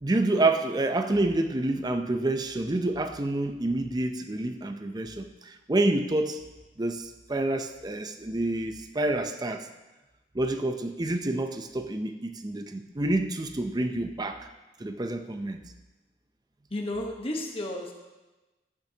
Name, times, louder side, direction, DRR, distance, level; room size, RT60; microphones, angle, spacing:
voice 1, 0.0-6.4 6.8-9.7 10.3-14.5 14.8-15.6, right 2 dB, 25° right, 7 dB, 0.5 m, -28 dB
voice 2, 16.7-17.9, left 1 dB, 35° left, 1 dB, 1.1 m, -32 dB
12.0 x 8.8 x 2.8 m, 1.1 s
head